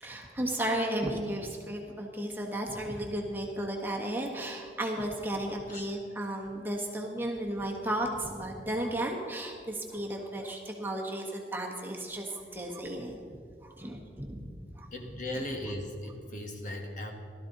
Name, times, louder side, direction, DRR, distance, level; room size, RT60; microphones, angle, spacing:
voice 1, 0.0-13.2 13.6-14.5 14.8-14.9, right 1 dB, 10° right, -1 dB, 1.5 m, -34 dB
voice 2, 14.9-17.1, left 1 dB, 45° left, 2 dB, 1.8 m, -37 dB
17.0 x 13.0 x 4.1 m, 2.2 s
head